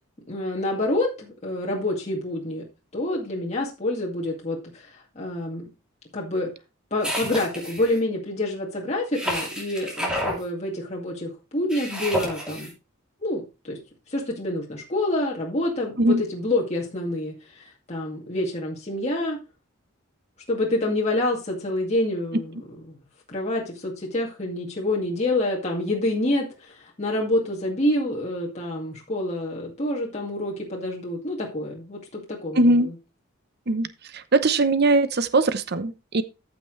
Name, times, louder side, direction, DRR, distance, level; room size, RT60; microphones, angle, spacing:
voice 1, 0.3-2.6 2.9-5.6 6.1-6.5 6.9-12.7 13.2-13.8 14.1-19.4 20.5-22.6 22.9-23.0 23.3-32.9, left 1 dB, 35° left, -3 dB, 2.2 m, -27 dB
sound 1, 7.0-8.0 9.1-10.4 11.7-12.7, equal, 5° right, 3.0 m, -30 dB
voice 2, 32.5-32.9 33.7-33.9 34.1-36.2, right 2 dB, 50° right, 13 dB, 0.9 m, -20 dB
14.0 x 6.0 x 3.2 m, 0.29 s
head